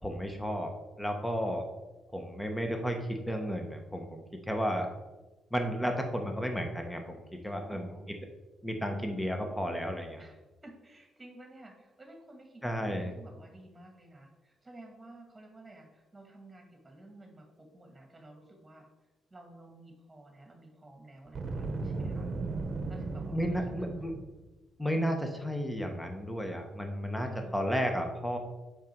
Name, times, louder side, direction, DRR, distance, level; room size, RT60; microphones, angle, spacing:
voice 1, 0.0-0.7 1.0-1.7 2.1-4.9 5.5-7.9 8.6-10.2 12.6-13.1 23.3-24.1 24.8-28.4, equal, 5° left, 4 dB, 1.2 m, -33 dB
voice 2, 7.4-8.2 10.2-18.9 19.3-22.3 22.9-24.2 27.2-27.6, right 1 dB, 15° right, 2 dB, 2.2 m, -52 dB
Boom, 21.3-24.4, right 3 dB, 45° right, 1.1 m, -36 dB
7.0 x 5.3 x 4.6 m, 1.1 s
cardioid pair, 90°, 0 cm